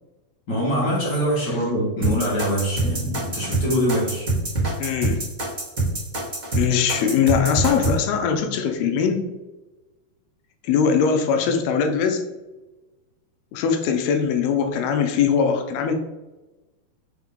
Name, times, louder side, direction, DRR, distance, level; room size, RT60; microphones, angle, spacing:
voice 1, 0.5-4.3, equal, 40° left, -5 dB, 1.5 m, -24 dB
sound 1, 2.0-7.9, right 2 dB, 25° right, 0.9 m, -24 dB
voice 2, 4.8-5.2 6.5-9.3 10.6-12.2 13.5-16.0, left 6 dB, 85° left, 5 dB, 2.8 m, -21 dB
6.1 x 4.6 x 3.6 m, 1.1 s
omnidirectional pair, 4.5 m